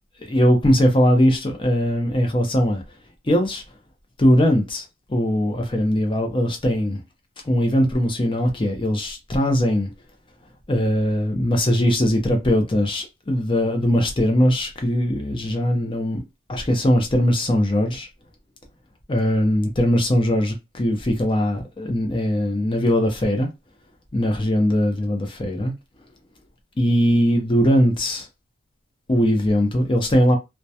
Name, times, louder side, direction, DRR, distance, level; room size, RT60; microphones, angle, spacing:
voice 1, 0.2-2.8 3.3-3.6 4.2-4.8 5.1-7.0 7.4-9.9 10.7-16.2 16.5-18.1 19.1-23.5 24.1-25.7 26.8-28.3 29.1-30.4, equal, 25° left, 0.6 m, -20 dB
2.2 x 2.2 x 2.7 m
head